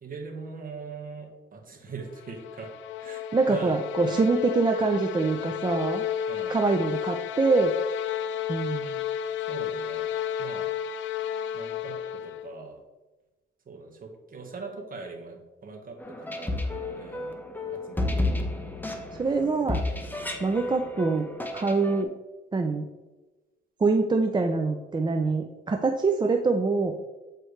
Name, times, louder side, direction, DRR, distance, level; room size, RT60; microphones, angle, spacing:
voice 1, 0.0-2.7 3.0-3.2 3.5-4.3 6.3-6.6 9.5-10.1 10.4-10.7 11.5-12.0 12.2-12.8 13.6-16.6 16.9-17.3 17.7-18.3, right 4 dB, 45° right, 2 dB, 1.4 m, -41 dB
sound 1, 2.0-12.5, left 9 dB, 75° left, 0.5 m, -32 dB
voice 2, 3.3-6.0 6.5-7.7 8.5-9.0 18.4-18.5 19.1-19.8 20.4-21.3 21.5-22.1 22.5-22.8 23.8-26.9, right 3 dB, 20° right, 4 dB, 0.5 m, -25 dB
sound 2, 16.0-22.0, left 2 dB, 10° left, 0.8 m, -32 dB
8.0 x 4.5 x 3.2 m, 1.1 s
cardioid pair, 90°, 20 cm